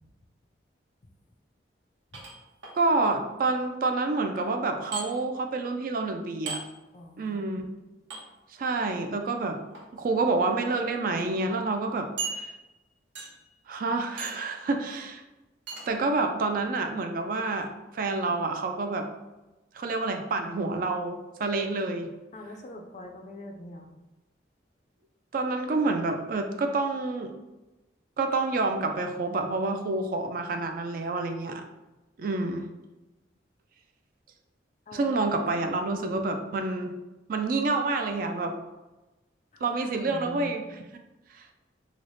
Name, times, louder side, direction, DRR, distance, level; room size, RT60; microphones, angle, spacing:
sound 1, 2.1-2.7 4.9-5.1 6.5-6.6 8.1-8.2 9.6-9.8 10.6-10.7 11.0-11.1 12.2-12.8 13.1-13.5 14.2-14.5 15.7-15.9, right 4 dB, 70° right, 0.8 m, -36 dB
voice 1, 2.7-6.6 7.2-7.7 8.5-9.6 9.9-12.1 12.4-12.5 13.7-15.2 15.9-19.1 19.7-22.1 25.3-27.3 28.2-31.6 32.2-32.7 34.9-36.9 37.3-38.6 39.6-40.6 41.3-41.5, right 3 dB, 45° right, 6 dB, 0.3 m, -28 dB
voice 2, 6.9-7.7 22.3-23.9 34.9-35.1 39.5-39.7 40.0-40.5, left 1 dB, 35° left, 3 dB, 0.4 m, -43 dB
3.1 x 2.0 x 3.9 m, 1.1 s
head